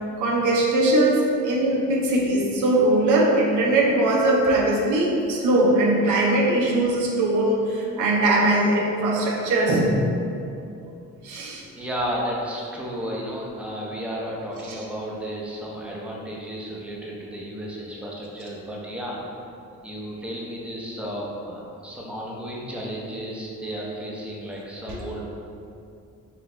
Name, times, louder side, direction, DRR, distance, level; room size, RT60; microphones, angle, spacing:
voice 1, 0.2-10.0 11.2-11.6 24.9-25.0, right 1 dB, 85° right, -2 dB, 0.7 m, -21 dB
voice 2, 11.8-19.2 19.8-25.3, equal, 5° right, -4 dB, 0.7 m, -33 dB
5.7 x 2.4 x 3.0 m, 2.6 s
cardioid pair, 90°, 30 cm